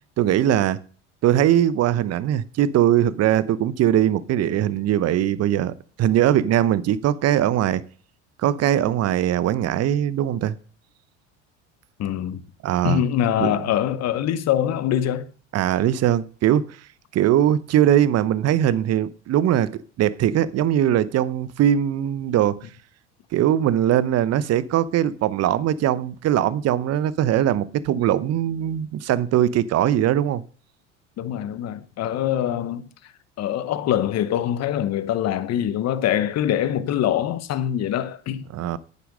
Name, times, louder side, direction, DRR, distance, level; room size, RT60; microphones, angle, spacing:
voice 1, 0.2-0.8 1.2-5.7 6.0-7.8 8.4-10.6 12.6-13.0 13.4-13.5 15.5-16.8 17.1-22.7 23.3-30.4 38.5-38.8, right 11 dB, 40° right, 0.8 m, -21 dB
voice 2, 12.0-12.4 12.8-15.3 31.2-32.9 33.4-38.5, left 10 dB, 45° left, 1.1 m, -24 dB
9.5 x 7.0 x 5.2 m
hypercardioid pair, 80°, 37 cm